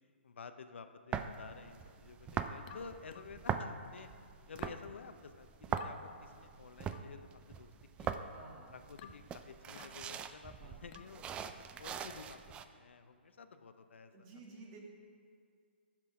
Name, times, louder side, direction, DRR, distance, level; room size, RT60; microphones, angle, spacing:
voice 1, 0.2-4.1 4.5-7.7 8.0-8.3 8.7-11.5 11.8-12.4 12.7-14.3, left 5 dB, 75° left, 9 dB, 0.7 m, -52 dB
sound 1, 1.1-12.6, right 8 dB, 15° right, 0.4 m, -42 dB
sound 2, 2.7-3.8 4.6-4.9 5.8-6.0 6.9-7.2 8.0-8.3 9.0-9.3 9.8-10.0 10.9-11.2, left 10 dB, 40° left, 0.5 m, -54 dB
voice 2, 8.3-8.8 10.6-10.8 14.1-14.8, right 3 dB, 35° right, -1 dB, 2.0 m, -54 dB
14.0 x 6.1 x 5.0 m, 2.2 s
hypercardioid pair, 140°, 6 cm